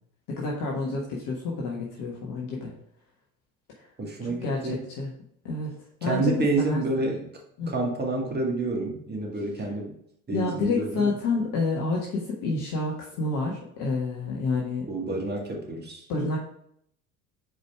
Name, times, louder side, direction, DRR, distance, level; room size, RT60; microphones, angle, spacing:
voice 1, 0.4-2.7 4.2-5.1 5.4-5.7 6.0-6.3 6.7-6.8 7.6-7.7 10.3-14.9 16.1-16.4, left 3 dB, 50° left, -3 dB, 1.4 m, -29 dB
voice 2, 4.0-4.8 6.0-7.3 7.7-9.9 10.3-11.1 14.9-16.1, right 2 dB, 25° right, 0 dB, 1.9 m, -28 dB
5.0 x 4.8 x 4.6 m, 0.71 s
figure-of-eight pair, 70°, 42 cm